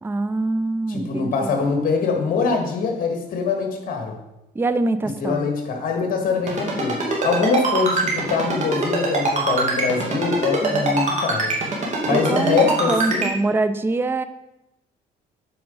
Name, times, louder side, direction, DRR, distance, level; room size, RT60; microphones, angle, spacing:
voice 1, 0.0-1.6 4.6-5.5 10.6-11.0 12.1-14.2, right 2 dB, 15° right, 12 dB, 0.4 m, -24 dB
voice 2, 0.9-4.2 5.2-11.6 12.0-13.3, left 5 dB, 55° left, 4 dB, 1.7 m, -23 dB
Ringtone, 6.5-13.3, right 3 dB, 45° right, 2.4 m, -22 dB
7.9 x 5.0 x 5.3 m, 0.91 s
cardioid pair, 110°, 17 cm